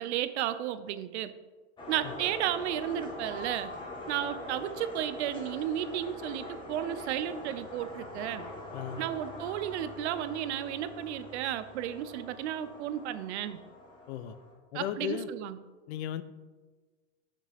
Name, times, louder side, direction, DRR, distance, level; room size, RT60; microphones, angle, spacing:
voice 1, 0.0-1.3 1.9-3.7 4.1-8.5 9.0-13.6 14.7-15.6, right 11 dB, 65° right, 13 dB, 0.6 m, -33 dB
sound 1, 1.8-14.5, left 2 dB, 15° left, 1.1 m, -43 dB
Keyboard (musical), 3.2-6.0, left 1 dB, 35° right, 1.1 m, -49 dB
voice 2, 14.7-15.3 15.9-16.2, left 10 dB, 65° left, 13 dB, 0.6 m, -35 dB
6.6 x 6.1 x 3.4 m, 1.3 s
supercardioid pair, 155°, 36 cm